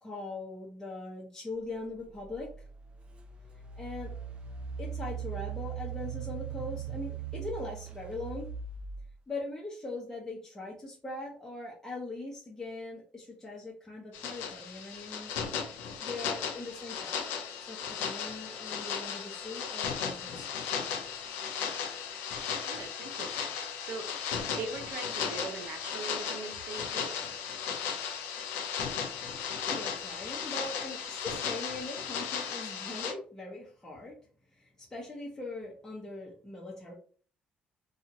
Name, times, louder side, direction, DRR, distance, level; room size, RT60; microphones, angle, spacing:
voice 1, 0.0-2.7 3.8-4.1 4.8-8.5 9.3-15.3 16.0-17.2 17.6-20.7 29.6-34.1 34.5-36.9, left 2 dB, 15° left, 0.9 m, -41 dB
Engine, 2.4-2.5 3.1-9.1, right 8 dB, 30° right, 0.6 m, -39 dB
sound 1, 14.1-33.1, left 7 dB, 90° left, 0.5 m, -36 dB
voice 2, 22.6-23.5 23.8-24.2 24.5-27.1, right 4 dB, 70° right, 0.7 m, -41 dB
2.8 x 2.4 x 2.7 m
cardioid pair, 95°, 3 cm